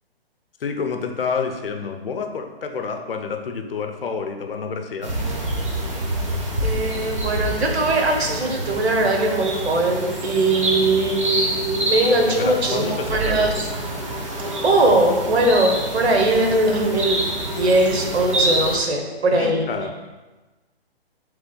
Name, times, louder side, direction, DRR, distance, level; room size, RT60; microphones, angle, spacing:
voice 1, 0.6-5.2 12.4-13.5 19.3-19.9, left 5 dB, 60° left, 5 dB, 0.6 m, -28 dB
sound 1, 5.0-18.8, right 1 dB, 30° right, 0.5 m, -27 dB
voice 2, 6.6-13.7 14.4-19.7, right 2 dB, 90° right, 2 dB, 1.0 m, -20 dB
3.5 x 3.2 x 3.8 m, 1.2 s
hypercardioid pair, 170°, 31 cm